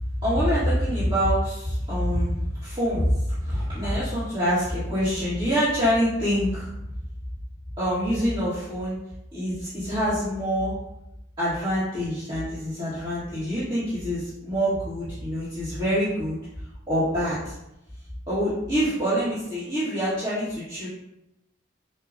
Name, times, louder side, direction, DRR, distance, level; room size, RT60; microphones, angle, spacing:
voice 1, 0.0-6.7 7.8-9.0 9.3-10.7 11.4-16.4 16.9-17.5 18.3-20.9, equal, 25° right, -13 dB, 1.4 m, -25 dB
6.6 x 2.3 x 2.5 m, 0.87 s
head